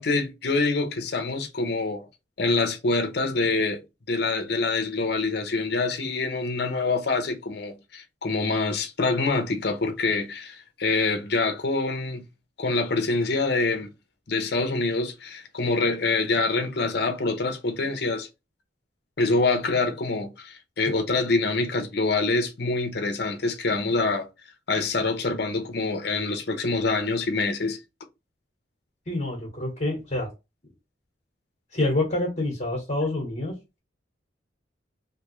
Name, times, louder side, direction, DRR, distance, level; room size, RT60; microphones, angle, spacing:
voice 1, 0.0-2.1 2.4-3.8 4.1-12.2 12.6-13.9 14.3-18.3 19.2-24.3 24.7-27.8, left 3 dB, 60° left, 0.7 m, -25 dB
voice 2, 29.1-30.3 31.7-33.8, left 2 dB, 40° left, 1.2 m, -27 dB
3.3 x 2.7 x 3.0 m
head